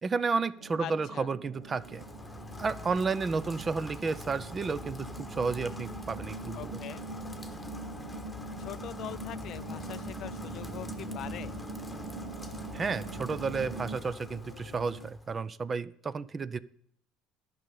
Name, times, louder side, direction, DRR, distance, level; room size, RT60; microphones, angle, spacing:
voice 1, 0.0-2.0 2.6-6.7 12.7-16.6, right 4 dB, 30° right, 17 dB, 0.6 m, -32 dB
sound 1, 0.6-14.0, right 3 dB, 85° right, 2.4 m, -43 dB
voice 2, 0.8-1.3 6.5-7.0 8.6-11.6, left 12 dB, 60° left, 17 dB, 0.4 m, -42 dB
Rain, 1.6-15.4, left 2 dB, 10° left, 1.2 m, -45 dB
sound 2, 6.9-15.1, left 9 dB, 90° left, 0.8 m, -50 dB
11.0 x 5.4 x 8.5 m, 0.67 s
supercardioid pair, 85°, 0 cm